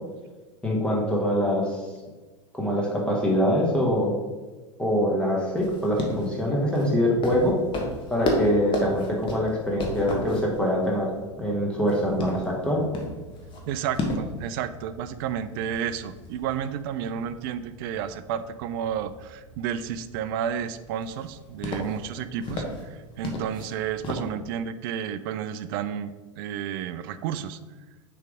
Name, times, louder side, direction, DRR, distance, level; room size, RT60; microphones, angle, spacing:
voice 1, 0.6-1.9 2.5-4.1 4.8-7.6 8.1-11.1 11.4-12.8, equal, 5° left, -3 dB, 1.2 m, -24 dB
sound 1, 5.6-24.3, left 1 dB, 30° left, 1.2 m, -35 dB
voice 2, 13.7-26.1 26.4-27.6, right 8 dB, 45° right, 12 dB, 0.4 m, -31 dB
6.5 x 3.3 x 4.9 m, 1.3 s
figure-of-eight pair, 85°, 16 cm